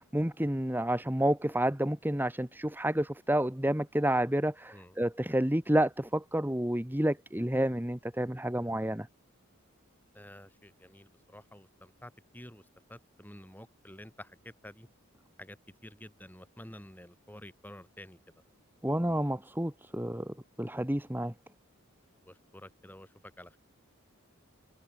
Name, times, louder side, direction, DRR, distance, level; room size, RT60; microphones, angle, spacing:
voice 1, 0.1-9.1 18.8-21.3, right 1 dB, 10° right, 1.6 m, -30 dB
voice 2, 10.1-14.9 15.4-18.2 22.2-23.6, left 1 dB, 10° left, 8.0 m, -50 dB
head